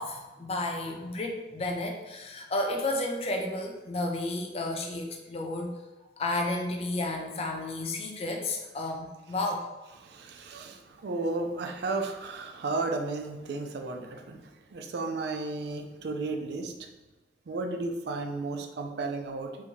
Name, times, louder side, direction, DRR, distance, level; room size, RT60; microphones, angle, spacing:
voice 1, 0.0-5.7 6.2-9.7, left 2 dB, 35° left, 2 dB, 0.5 m, -32 dB
voice 2, 10.0-16.9 17.5-19.5, right 3 dB, 65° right, 4 dB, 0.4 m, -34 dB
3.5 x 2.7 x 3.0 m, 1.1 s
head